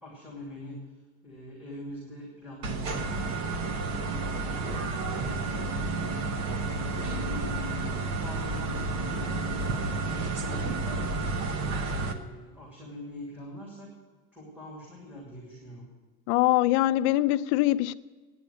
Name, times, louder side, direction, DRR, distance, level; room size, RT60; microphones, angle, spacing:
voice 1, 0.0-3.6 3.9-6.1 7.0-7.3 7.7-8.8 9.2-11.2 11.9-13.9 14.3-15.9, equal, 5° right, -6 dB, 2.5 m, -44 dB
sound 1, 2.6-12.1, right 3 dB, 45° right, 1.1 m, -31 dB
voice 2, 16.3-17.9, left 16 dB, 80° left, 14 dB, 0.6 m, -23 dB
10.5 x 8.8 x 9.5 m, 1.4 s
cardioid pair, 180°, 33 cm